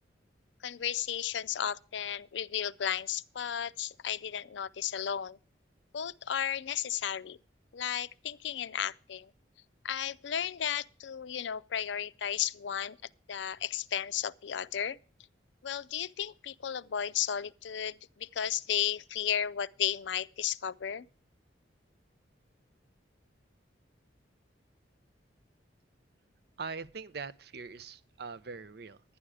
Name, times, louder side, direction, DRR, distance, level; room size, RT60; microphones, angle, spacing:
voice 1, 0.6-5.4 5.9-7.4 7.7-9.3 9.8-13.0 13.3-15.0 15.6-21.1, left 9 dB, 70° left, 0.5 m, -34 dB
voice 2, 26.6-29.0, right 5 dB, 55° right, 0.6 m, -42 dB
11.5 x 10.0 x 4.8 m
head